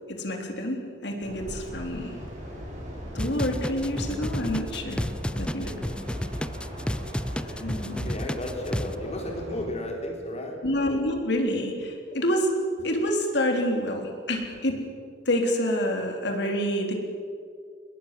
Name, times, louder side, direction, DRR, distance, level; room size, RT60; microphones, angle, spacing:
voice 1, 0.1-2.2 3.1-5.1 5.4-5.7 7.5-8.1 10.6-14.9 15.3-16.9, equal, 65° left, 2 dB, 3.5 m, -28 dB
sound 1, 1.2-9.6, equal, 40° right, 6.5 m, -38 dB
sound 2, 3.2-8.9, left 1 dB, 5° left, 0.4 m, -31 dB
voice 2, 7.1-10.6, left 1 dB, 35° left, 1 dB, 4.2 m, -35 dB
21.5 x 21.0 x 7.6 m, 2.2 s
head